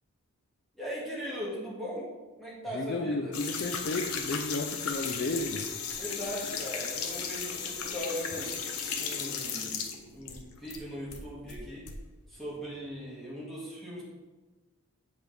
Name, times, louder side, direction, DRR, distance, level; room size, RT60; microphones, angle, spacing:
voice 1, 0.8-2.1 2.4-3.3 5.9-8.5 9.0-9.8 10.1-11.8 12.3-14.0, equal, ahead, -8 dB, 1.9 m, -39 dB
voice 2, 2.7-5.7, left 2 dB, 45° left, 4 dB, 0.4 m, -33 dB
sound 1, 3.3-10.8 11.1-12.0, left 6 dB, 85° left, 0.8 m, -35 dB
8.2 x 5.0 x 3.4 m, 1.2 s
head